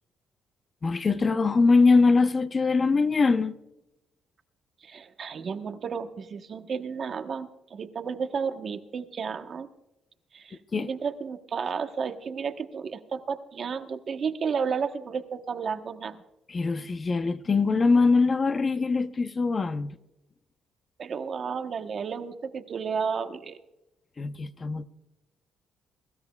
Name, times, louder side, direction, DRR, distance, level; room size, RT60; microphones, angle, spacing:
voice 1, 0.8-3.5 10.7-10.9 16.5-20.0 24.2-24.8, left 4 dB, 35° left, 0.8 m, -22 dB
voice 2, 4.8-9.7 10.3-16.2 21.0-23.6, right 6 dB, 50° right, 1.1 m, -32 dB
23.0 x 13.0 x 2.4 m
cardioid pair, 90°, 0 cm